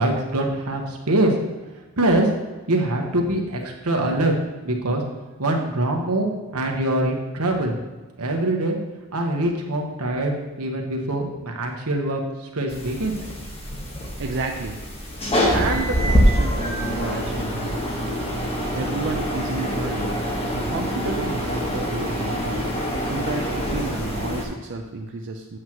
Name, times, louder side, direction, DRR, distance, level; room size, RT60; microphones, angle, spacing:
voice 1, 0.0-1.3 2.0-2.3 2.7-4.3 4.6-5.0 5.4-7.7 8.2-8.8 9.1-12.2 12.5-13.2, right 1 dB, 85° right, 2 dB, 1.2 m, -23 dB
sound 1, 12.7-24.4, equal, 25° left, 1.3 m, -25 dB
voice 2, 14.2-14.8 15.5-17.8 18.7-20.1 20.5-22.6 23.0-25.6, right 3 dB, 55° right, 1 dB, 0.5 m, -31 dB
7.9 x 7.7 x 3.0 m, 1.2 s
head